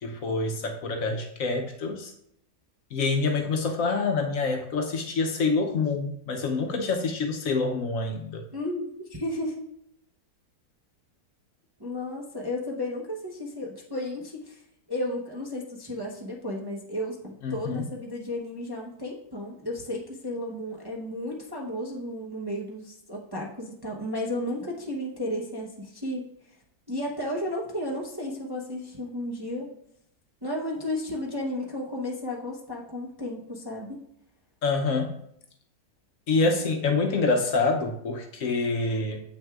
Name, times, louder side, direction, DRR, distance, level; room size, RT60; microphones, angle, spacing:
voice 1, 0.0-2.1 2.9-8.4 17.4-17.8 34.6-35.2 36.3-39.2, left 3 dB, 65° left, 3 dB, 1.0 m, -26 dB
voice 2, 8.5-9.6 11.8-14.6 14.9-26.2 26.9-29.7 30.4-34.0, left 1 dB, 20° right, -3 dB, 0.7 m, -33 dB
8.1 x 6.1 x 2.4 m, 0.72 s
omnidirectional pair, 1.6 m